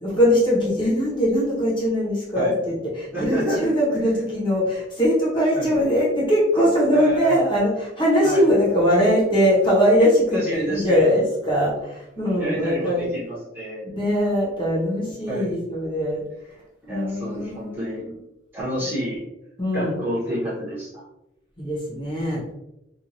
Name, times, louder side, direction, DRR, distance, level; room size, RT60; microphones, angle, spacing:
voice 1, 0.0-13.1 13.8-16.2 16.9-18.1 19.6-19.9 21.6-22.4, equal, 25° left, -6 dB, 1.0 m, -21 dB
voice 2, 3.1-3.7 5.5-5.7 6.9-7.4 8.2-8.4 10.3-11.1 12.4-13.9 15.3-15.5 16.8-18.0 18.5-19.2 19.7-21.0, right 1 dB, 10° right, -9 dB, 1.0 m, -28 dB
2.9 x 2.4 x 2.5 m, 0.91 s
head